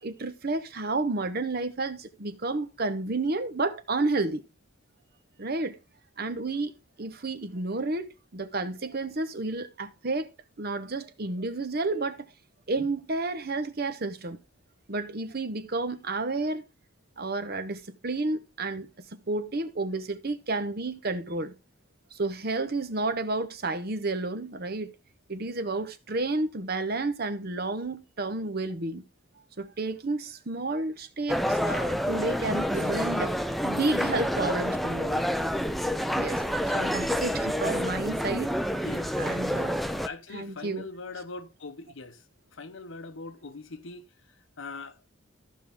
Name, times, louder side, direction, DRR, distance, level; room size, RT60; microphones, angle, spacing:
voice 1, 0.0-4.4 5.4-5.8 6.2-10.3 10.6-12.3 12.7-14.4 14.9-16.6 17.2-21.5 22.1-24.9 25.3-29.0 29.6-35.2 36.1-36.4 36.7-38.6 39.2-39.7 40.3-40.9, right 3 dB, 50° right, 0.9 m, -31 dB
sound 1, 31.3-40.1, equal, ahead, 0.4 m, -28 dB
voice 2, 38.8-42.2 42.5-44.1 44.6-45.0, left 3 dB, 70° left, 0.9 m, -42 dB
14.5 x 5.5 x 3.5 m
head